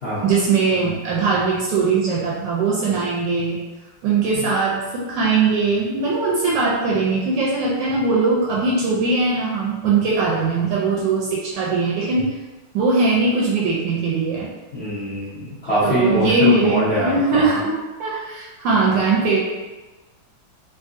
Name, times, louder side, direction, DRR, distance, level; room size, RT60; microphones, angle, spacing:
voice 1, 0.2-3.6 4.0-12.3 12.7-14.5 15.8-19.4, right 3 dB, 75° right, -4 dB, 1.1 m, -20 dB
voice 2, 14.7-17.4, right 1 dB, 50° left, -12 dB, 0.8 m, -23 dB
3.6 x 2.7 x 2.5 m, 1.2 s
omnidirectional pair, 2.3 m